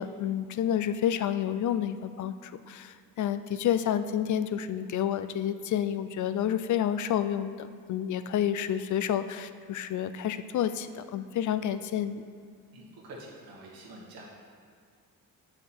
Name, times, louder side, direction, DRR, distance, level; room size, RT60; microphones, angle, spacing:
voice 1, 0.0-12.2, left 10 dB, 60° left, 12 dB, 0.4 m, -29 dB
voice 2, 12.7-14.2, right 2 dB, 90° right, -4 dB, 2.0 m, -47 dB
8.4 x 6.5 x 4.4 m, 2.2 s
cardioid pair, 100°, 35 cm